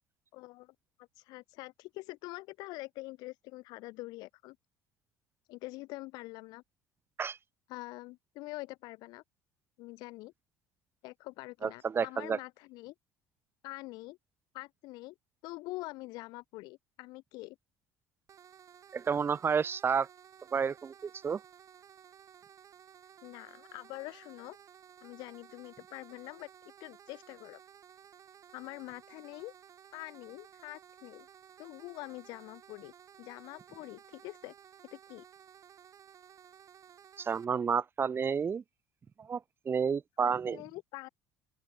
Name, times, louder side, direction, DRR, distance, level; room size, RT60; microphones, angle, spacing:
voice 1, 0.3-4.6 5.5-6.6 7.7-9.2 9.8-10.3 11.0-12.9 13.6-14.2 14.5-15.1 15.4-17.6 23.2-24.6 25.0-26.5 26.8-27.6 28.5-29.5 29.9-31.3 31.6-32.9 33.2-34.5 34.9-35.3 40.2-41.1, left 21 dB, 70° left, 2.8 m, -45 dB
voice 2, 11.6-12.4 18.9-20.1 20.5-21.4 37.2-38.6 39.2-39.4 39.7-40.6, right 6 dB, 30° right, 0.7 m, -30 dB
sound 1, 18.3-37.5, right 9 dB, 50° right, 3.4 m, -56 dB
open air
hypercardioid pair, 70°, 7 cm